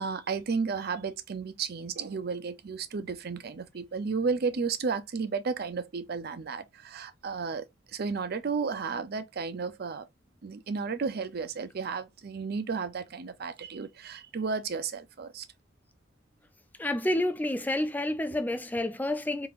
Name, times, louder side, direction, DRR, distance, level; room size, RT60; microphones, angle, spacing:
voice 1, 0.0-7.6 7.9-10.1 10.4-15.4, right 5 dB, 55° right, 0.5 m, -33 dB
voice 2, 16.8-19.5, left 1 dB, 10° left, 0.4 m, -29 dB
3.8 x 2.8 x 2.4 m
head